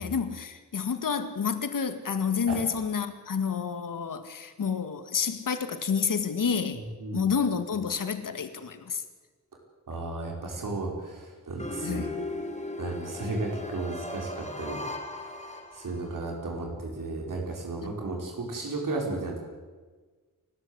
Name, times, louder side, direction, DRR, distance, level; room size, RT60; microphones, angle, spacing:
voice 1, 0.0-6.8 7.1-9.0 11.8-12.1, left 6 dB, 75° left, 9 dB, 2.0 m, -29 dB
voice 2, 6.7-7.3 7.7-7.8 9.9-12.1 12.8-14.8 15.2-19.4, right 2 dB, 70° right, 0 dB, 5.1 m, -34 dB
sound 1, 11.6-16.2, left 1 dB, 20° left, 3.1 m, -37 dB
28.5 x 13.5 x 8.1 m, 1.4 s
wide cardioid pair, 105°, 33 cm